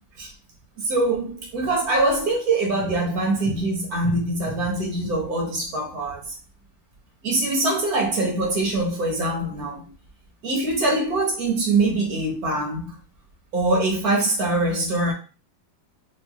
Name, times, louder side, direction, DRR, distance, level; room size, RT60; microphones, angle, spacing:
voice 1, 0.8-6.3 7.2-9.8 10.4-13.0 13.5-15.1, right 2 dB, 55° right, 1.5 m, -23 dB
4.4 x 2.4 x 2.4 m
omnidirectional pair, 2.0 m